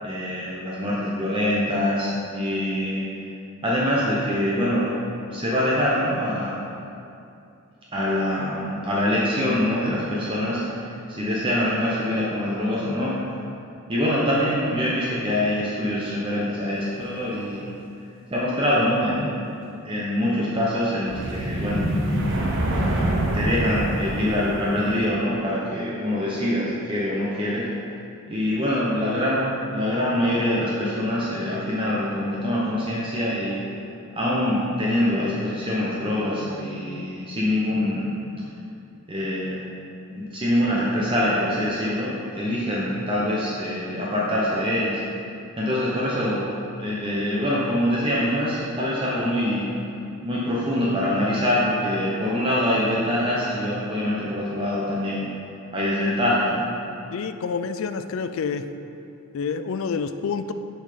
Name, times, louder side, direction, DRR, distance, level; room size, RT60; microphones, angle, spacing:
voice 1, 0.0-3.1 3.6-4.9 5.3-6.6 7.9-13.1 13.9-17.7 18.3-19.5 19.8-21.8 23.3-27.7 28.3-29.4 29.7-33.6 34.1-38.1 38.4-38.5 39.1-39.7 40.1-45.0 45.6-46.4 46.8-49.7 50.2-55.3 55.7-56.6, left 1 dB, 25° right, -6 dB, 0.8 m, -24 dB
sound 1, 21.1-25.1, right 1 dB, 55° right, 1.1 m, -25 dB
voice 2, 57.1-58.6 59.3-60.5, left 5 dB, 65° left, 10 dB, 0.4 m, -28 dB
7.2 x 5.6 x 5.0 m, 2.6 s
head